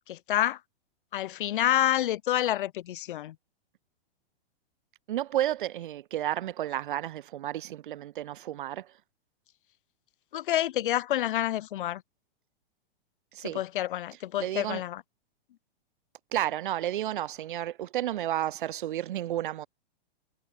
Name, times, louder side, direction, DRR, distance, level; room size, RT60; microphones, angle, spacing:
voice 1, 0.1-0.6 1.1-3.4 10.3-12.0 13.4-15.0, left 13 dB, 60° left, 1.0 m, -28 dB
voice 2, 5.1-8.9 13.3-13.6 14.4-14.8 16.3-19.7, right 12 dB, 55° right, 2.3 m, -32 dB
supercardioid pair, 170°, 30 cm